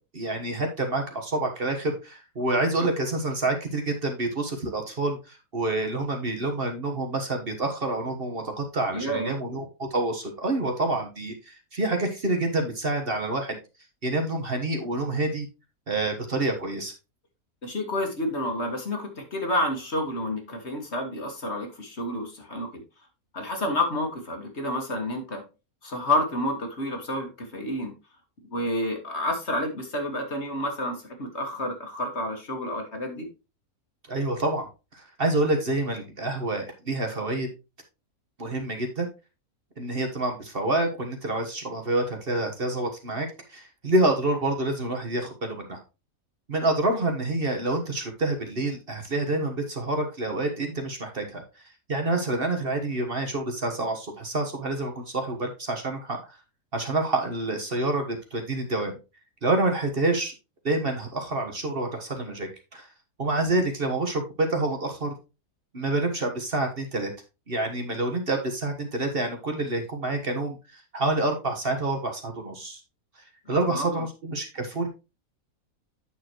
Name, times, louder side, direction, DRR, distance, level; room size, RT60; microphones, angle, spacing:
voice 1, 0.1-13.6 14.0-15.5 15.9-16.9 34.1-34.7 34.9-37.5 38.4-39.1 39.8-45.8 46.5-51.6 51.9-56.4 56.7-59.0 59.4-60.3 60.6-62.9 63.2-65.1 65.7-67.1 67.5-72.8 73.5-74.9, right 2 dB, 40° right, 4 dB, 1.4 m, -27 dB
voice 2, 8.9-9.3 17.6-22.8 23.3-25.4 25.8-27.9 28.5-33.3 73.5-74.1, left 1 dB, 50° left, 4 dB, 2.0 m, -29 dB
9.0 x 6.7 x 3.0 m, 0.29 s
omnidirectional pair, 1.5 m